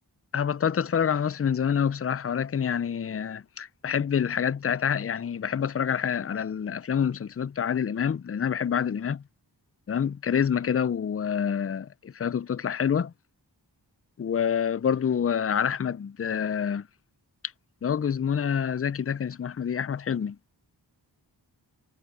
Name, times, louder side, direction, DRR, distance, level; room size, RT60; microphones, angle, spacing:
voice 1, 0.3-9.2 9.9-13.1 14.2-16.8 17.8-20.4, left 7 dB, 35° left, 0.4 m, -27 dB
wide cardioid pair, 40°, 44 cm